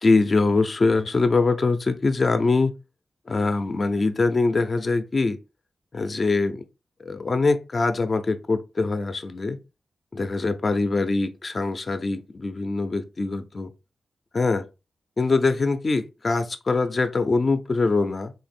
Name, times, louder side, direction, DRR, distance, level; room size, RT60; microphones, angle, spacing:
voice 1, 0.0-2.7 3.3-5.4 5.9-6.6 7.1-9.6 10.1-13.7 14.3-14.7 15.2-18.3, left 3 dB, 35° left, 0.5 m, -23 dB
3.9 x 2.9 x 4.2 m
wide cardioid pair, 140°, 0 cm